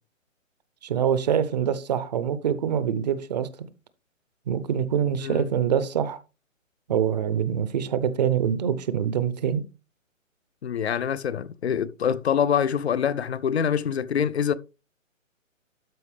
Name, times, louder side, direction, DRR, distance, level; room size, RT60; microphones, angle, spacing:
voice 1, 0.8-3.5 4.5-6.2 6.9-9.6, right 8 dB, 30° right, 0.7 m, -25 dB
voice 2, 10.6-14.5, left 8 dB, 55° left, 0.6 m, -25 dB
12.5 x 4.7 x 3.3 m
figure-of-eight pair, 140°, 39 cm